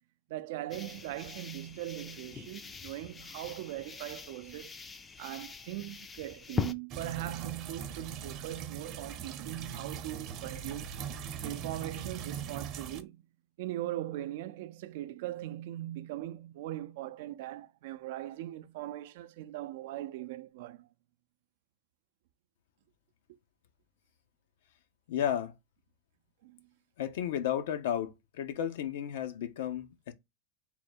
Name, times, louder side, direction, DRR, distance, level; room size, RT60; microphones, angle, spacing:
voice 1, 0.3-4.8 5.2-10.9 11.4-13.2 13.6-20.9 26.4-26.7, right 14 dB, 70° right, 0.4 m, -40 dB
sound 1, 0.7-6.7, left 6 dB, 20° left, 0.4 m, -41 dB
sound 2, 6.9-13.0, right 8 dB, 45° right, 0.7 m, -41 dB
voice 2, 25.1-25.6 27.0-30.1, left 10 dB, 80° left, 0.6 m, -33 dB
3.7 x 2.2 x 4.3 m
supercardioid pair, 125°, 0 cm